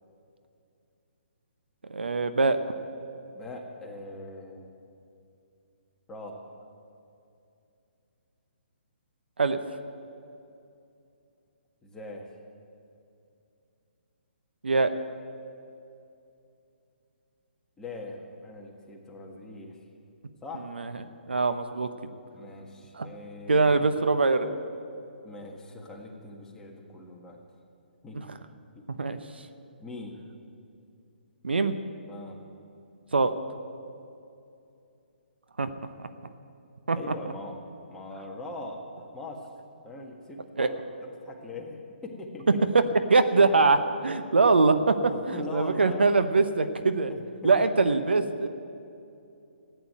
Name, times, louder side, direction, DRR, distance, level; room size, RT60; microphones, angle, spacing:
voice 1, 1.9-2.6 9.4-9.6 14.6-14.9 20.7-20.9 21.3-21.9 22.9-23.1 23.5-24.5 28.9-29.2 31.4-31.8 33.1-33.3 35.6-35.7 36.0-36.1 36.9-37.0 40.6-40.7 42.7-42.8 43.1-47.1 47.4-48.5, right 3 dB, 75° right, 9 dB, 0.9 m, -23 dB
voice 2, 3.3-4.7 6.1-6.5 11.8-12.3 17.8-19.8 20.4-20.7 22.3-23.9 25.2-27.4 28.0-28.2 28.7-28.8 29.8-30.2 32.1-32.4 37.0-37.6 37.9-39.5 39.8-40.7 41.2-42.5 45.1-46.1 47.1-47.5, left 2 dB, 10° left, -1 dB, 1.7 m, -41 dB
14.5 x 9.4 x 9.2 m, 2.7 s
figure-of-eight pair, 135°, 6 cm